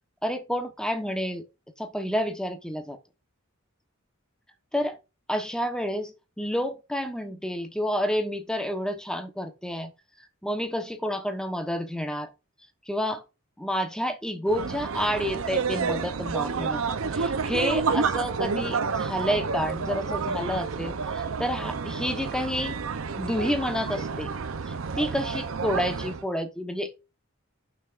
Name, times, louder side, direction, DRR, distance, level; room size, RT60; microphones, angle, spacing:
voice 1, 0.2-1.4 1.8-3.0 4.7-5.0 5.3-9.9 10.4-12.3 12.9-13.2 13.6-16.9 17.1-22.8 23.2-24.3 24.7-27.0, equal, 5° left, 1.0 m, -29 dB
sound 1, 14.5-26.2, right 5 dB, 85° right, 0.6 m, -29 dB
14.0 x 5.9 x 2.5 m
head